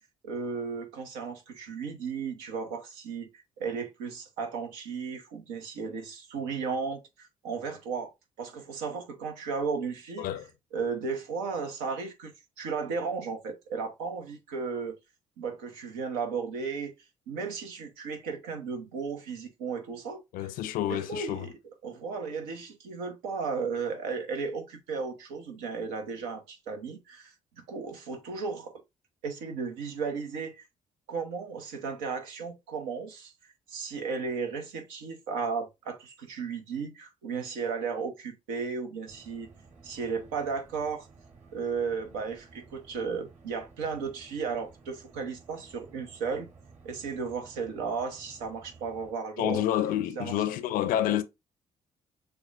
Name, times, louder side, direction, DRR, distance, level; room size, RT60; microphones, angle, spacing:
voice 1, 0.2-3.3 3.6-10.3 10.7-14.9 15.4-16.9 17.3-20.2 20.8-21.5 21.8-27.3 27.7-28.7 29.2-30.7 31.1-39.5 39.8-41.1 41.5-46.5 46.8-49.6 50.2-50.3, right 5 dB, 75° right, 0.9 m, -35 dB
voice 2, 20.3-21.4 49.4-51.2, left 12 dB, 65° left, 0.5 m, -28 dB
sound 1, 39.1-49.1, right 4 dB, 50° right, 2.8 m, -55 dB
6.8 x 2.3 x 2.5 m
figure-of-eight pair, 45°, 16 cm